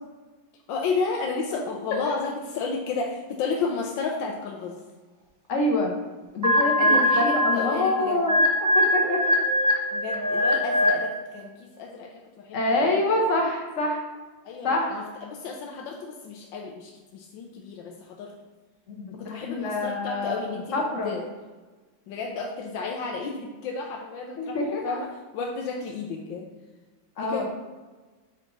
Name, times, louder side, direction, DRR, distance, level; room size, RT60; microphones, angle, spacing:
voice 1, 0.7-4.8 6.8-8.2 9.9-12.8 14.4-18.3 19.1-21.3 22.1-24.6 24.8-26.5 27.2-27.5, left 4 dB, 90° left, 0 dB, 1.4 m, -32 dB
voice 2, 5.5-5.9 6.3-8.4 8.7-9.4 12.5-14.1 14.6-14.9 18.9-20.5 20.7-21.1 24.4-25.0 27.2-27.5, left 2 dB, 45° left, 0 dB, 1.3 m, -26 dB
sound 1, 6.4-11.2, left 1 dB, 15° right, 0.6 m, -22 dB
6.0 x 4.5 x 3.8 m, 1.3 s
omnidirectional pair, 2.0 m